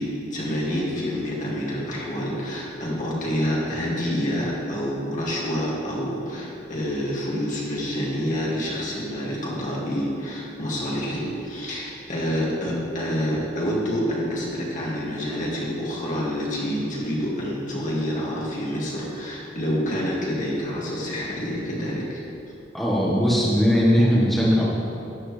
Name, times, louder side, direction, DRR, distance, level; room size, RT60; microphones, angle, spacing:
voice 1, 0.0-22.2, equal, 45° left, -5 dB, 2.2 m, -27 dB
voice 2, 22.7-24.8, equal, ahead, -7 dB, 1.5 m, -19 dB
12.0 x 9.3 x 3.3 m, 2.7 s
head